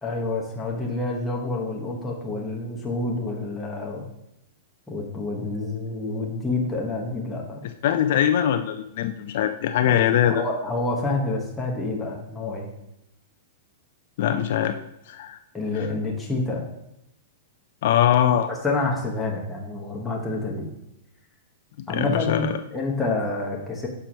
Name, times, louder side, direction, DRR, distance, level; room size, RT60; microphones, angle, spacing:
voice 1, 0.0-4.0 4.9-7.6 9.9-10.0 10.3-12.7 15.5-16.6 18.6-20.7 21.9-23.9, left 2 dB, 5° left, -3 dB, 1.0 m, -28 dB
voice 2, 7.8-10.4 14.2-14.8 15.1-15.4 15.7-15.9 17.8-18.5 21.9-22.6, left 10 dB, 50° left, 9 dB, 0.3 m, -22 dB
5.7 x 4.5 x 5.1 m, 0.83 s
supercardioid pair, 170°, 0 cm